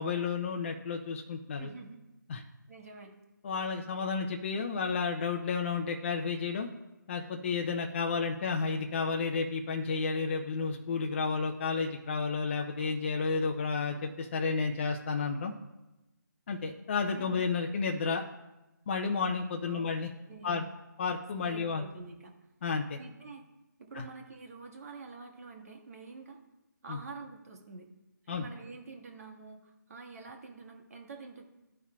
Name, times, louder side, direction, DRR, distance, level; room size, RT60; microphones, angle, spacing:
voice 1, 0.0-1.7 2.3-2.4 3.4-6.7 7.1-15.5 16.5-18.2 18.9-20.1 20.4-20.6 21.0-21.8 22.6-23.0 23.9-24.0 26.9-27.0 28.3-28.5, left 5 dB, 35° left, 2 dB, 0.5 m, -31 dB
voice 2, 1.5-2.0 2.7-3.1 17.1-17.4 19.6-19.9 20.3-20.7 21.4-22.3 22.9-23.4 23.8-26.4 26.8-27.9 28.2-31.4, right 4 dB, 45° right, 3 dB, 1.5 m, -47 dB
14.5 x 5.4 x 2.3 m, 0.99 s
figure-of-eight pair, 155°, 11 cm